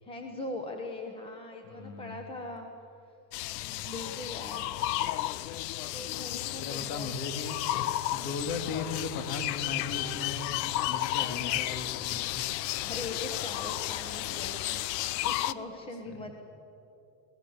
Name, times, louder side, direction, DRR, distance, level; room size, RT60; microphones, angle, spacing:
voice 1, 0.0-2.7 3.0-3.1 3.9-4.7 5.9-7.2 12.8-14.8 15.2-16.3, left 2 dB, 10° left, 3 dB, 1.1 m, -40 dB
voice 2, 1.6-2.3 3.6-3.9 6.2-7.6 8.1-12.4 16.1-16.3, left 4 dB, 55° left, 7 dB, 2.4 m, -38 dB
sound 1, 3.3-15.5, left 15 dB, 80° left, 0.8 m, -33 dB
23.5 x 18.0 x 7.3 m, 2.9 s
cardioid pair, 160°, 48 cm